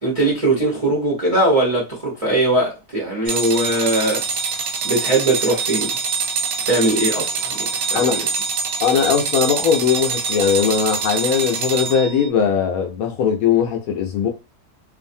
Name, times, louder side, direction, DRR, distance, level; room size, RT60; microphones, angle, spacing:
voice 1, 0.0-4.2 4.8-6.0 6.7-8.2, right 2 dB, 30° right, 0.7 m, -20 dB
sound 1, 3.3-12.3, right 5 dB, 70° right, 1.0 m, -25 dB
voice 2, 8.8-14.3, left 7 dB, 70° left, 0.9 m, -19 dB
2.6 x 2.5 x 2.6 m
omnidirectional pair, 1.8 m